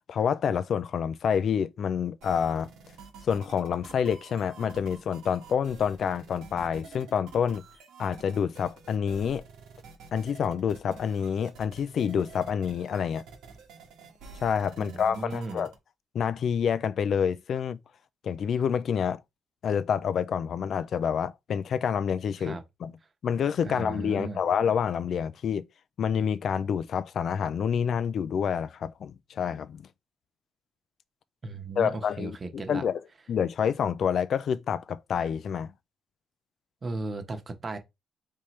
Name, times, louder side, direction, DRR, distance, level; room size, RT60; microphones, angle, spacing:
voice 1, 0.0-2.7 3.2-7.6 8.0-9.4 10.1-13.2 14.4-15.7 16.1-17.8 18.2-19.2 19.6-22.9 23.2-25.7 26.0-29.8 31.8-33.0 33.3-35.7, left 7 dB, 60° left, 0.3 m, -28 dB
sound 1, 2.2-15.7, right 4 dB, 90° right, 1.4 m, -49 dB
voice 2, 14.8-15.7 22.4-22.6 23.6-24.4 31.4-32.8 36.8-37.8, right 3 dB, 35° right, 1.0 m, -36 dB
4.2 x 3.5 x 3.2 m
cardioid pair, 90°, 0 cm